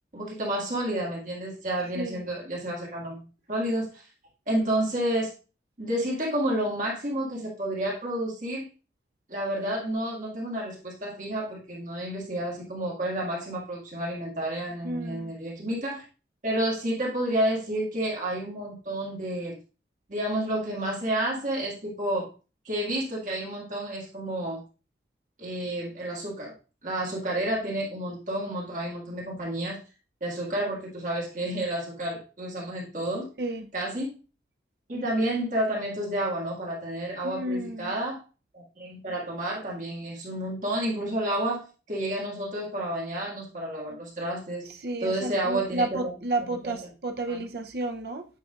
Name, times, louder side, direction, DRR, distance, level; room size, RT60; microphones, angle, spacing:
voice 1, 0.1-3.2 3.5-4.0 4.5-5.3 5.8-8.7 9.3-16.0 16.4-19.6 20.1-22.3 22.7-24.6 25.4-26.5 26.8-29.8 30.2-33.3 33.7-34.1 34.9-38.2 38.5-44.7 45.0-46.1 46.5-46.7 47.3-47.4, right 1 dB, 45° right, 1.9 m, -30 dB
voice 2, 14.8-15.3 33.4-33.7 37.2-38.0 44.8-48.3, right 2 dB, 60° right, 0.7 m, -31 dB
8.3 x 5.6 x 2.4 m
head